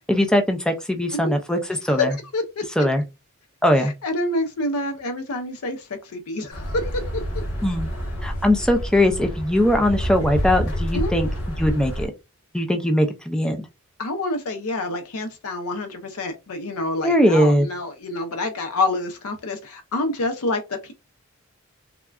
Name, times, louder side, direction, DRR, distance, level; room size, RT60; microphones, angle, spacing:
voice 1, 0.1-2.1 2.8-3.0 3.6-3.9 7.6-7.9 8.2-11.3 11.6-12.1 12.5-13.6 17.0-17.7, left 1 dB, 5° left, 5 dB, 0.3 m, -20 dB
voice 2, 2.3-2.6 3.8-6.9 10.9-11.1 14.0-20.9, left 2 dB, 85° left, 6 dB, 0.6 m, -27 dB
sound 1, 6.5-12.1, equal, 65° left, 1.1 m, -28 dB
3.6 x 2.1 x 2.3 m, 0.24 s
head